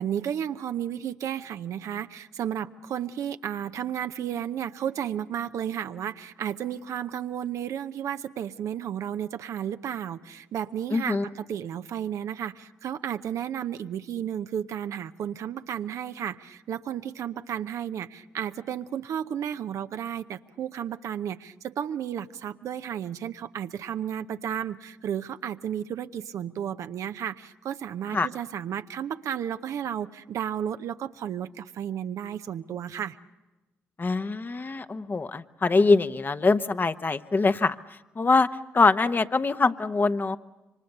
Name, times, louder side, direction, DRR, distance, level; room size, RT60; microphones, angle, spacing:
voice 1, 0.0-33.2, right 9 dB, 70° right, 10 dB, 0.8 m, -33 dB
voice 2, 10.9-11.3 28.1-28.3 34.0-37.8 38.2-38.5 38.7-40.4, left 3 dB, 35° left, 10 dB, 1.0 m, -23 dB
27.5 x 24.5 x 6.7 m, 1.1 s
hypercardioid pair, 50°, 6 cm